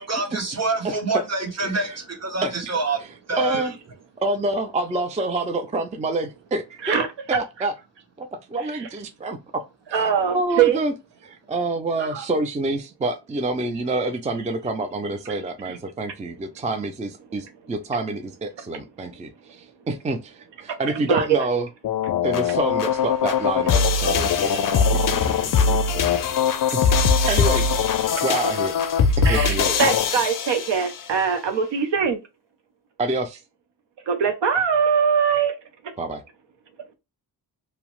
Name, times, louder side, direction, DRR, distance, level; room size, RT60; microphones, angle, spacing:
voice 1, 0.0-3.0 3.3-3.7, right 3 dB, 35° right, 1.0 m, -26 dB
voice 2, 1.6-2.0 2.4-2.6 3.4-3.7 4.2-7.0 7.3-7.7 8.2-9.6 9.9-10.0 10.3-10.9 11.2-21.7 22.2-26.3 26.7-26.9 27.3-27.7 28.2-28.7 29.2-29.8 33.0-33.4 36.0-36.2, right 2 dB, 20° right, 0.4 m, -27 dB
voice 3, 6.8-7.4 9.9-10.8 12.0-12.2 15.7-15.8 20.7-20.8 21.1-21.4 27.2-27.4 28.2-28.3 29.2-32.2 34.1-35.6, right 7 dB, 75° right, 0.7 m, -22 dB
sound 1, 21.8-31.1, left 5 dB, 50° left, 0.4 m, -21 dB
2.8 x 2.0 x 3.0 m
cardioid pair, 90°, 44 cm